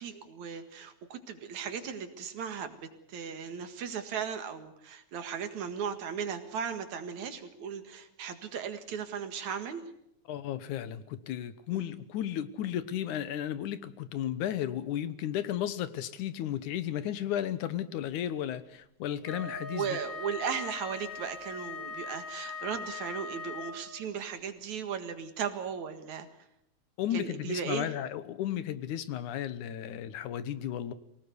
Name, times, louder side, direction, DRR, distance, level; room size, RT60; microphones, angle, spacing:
voice 1, 0.0-2.8 3.1-9.8 11.7-11.9 19.7-26.3 27.1-27.9, right 7 dB, 70° right, 8 dB, 3.1 m, -37 dB
voice 2, 10.3-20.0 27.0-30.9, left 11 dB, 80° left, 14 dB, 2.5 m, -34 dB
Wind instrument woodwind instrument, 19.2-24.1, left 4 dB, 15° left, 4.5 m, -41 dB
24.0 x 18.5 x 8.2 m, 0.77 s
omnidirectional pair, 3.5 m